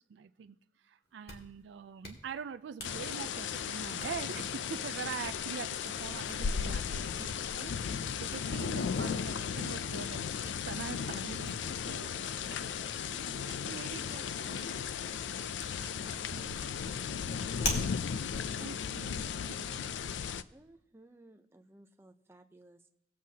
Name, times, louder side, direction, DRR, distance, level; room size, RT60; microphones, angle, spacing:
voice 1, 0.1-0.6 0.8-14.8 15.8-16.4 16.8-16.9 18.2-19.9, right 6 dB, 85° right, 11 dB, 0.4 m, -44 dB
Hands, 1.0-19.5, left 1 dB, 60° left, 1.9 m, -47 dB
sound 1, 2.8-20.4, left 7 dB, 90° left, 0.4 m, -36 dB
voice 2, 15.6-17.9, equal, 15° left, 0 dB, 1.6 m, -61 dB
voice 3, 20.5-22.9, right 1 dB, 15° right, 5 dB, 0.5 m, -58 dB
19.5 x 7.7 x 2.8 m, 0.79 s
head